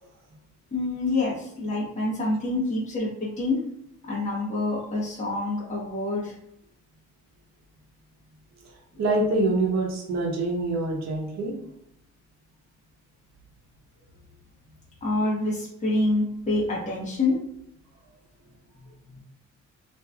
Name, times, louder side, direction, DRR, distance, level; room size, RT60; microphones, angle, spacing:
voice 1, 0.7-3.6 4.0-6.3 15.0-17.4 19.0-19.2, left 2 dB, 25° left, -5 dB, 1.1 m, -27 dB
voice 2, 8.6-11.6, right 2 dB, 60° right, 0 dB, 0.8 m, -26 dB
3.0 x 2.6 x 2.2 m, 0.76 s
cardioid pair, 90°, 30 cm